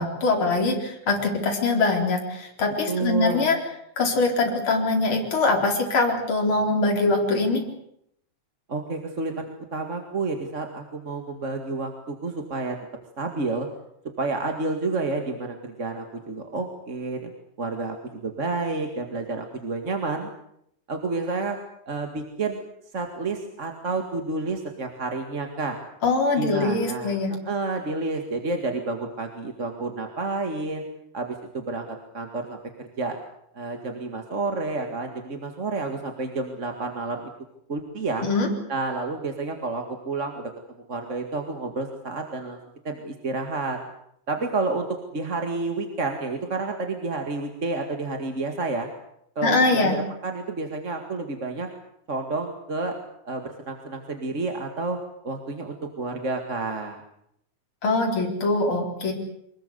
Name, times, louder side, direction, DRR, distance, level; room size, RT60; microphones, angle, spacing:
voice 1, 0.0-3.6 4.0-7.6 26.0-27.3 38.2-38.5 49.4-50.0 57.8-59.1, left 3 dB, 40° left, 1 dB, 4.9 m, -23 dB
voice 2, 2.9-3.5 8.7-12.8 13.2-13.7 14.2-17.3 17.6-18.0 18.2-20.3 20.9-21.6 21.9-22.6 22.9-25.8 26.4-27.2 27.4-30.8 31.1-31.9 32.1-33.2 33.5-37.2 37.7-38.3 38.7-40.5 40.9-42.6 42.8-43.8 44.3-44.9 45.1-48.9 49.4-50.0 50.2-51.7 52.1-52.9 53.2-55.0 55.2-57.0, right 3 dB, 30° right, 4 dB, 1.9 m, -30 dB
25.0 x 21.0 x 8.1 m, 0.74 s
omnidirectional pair, 3.5 m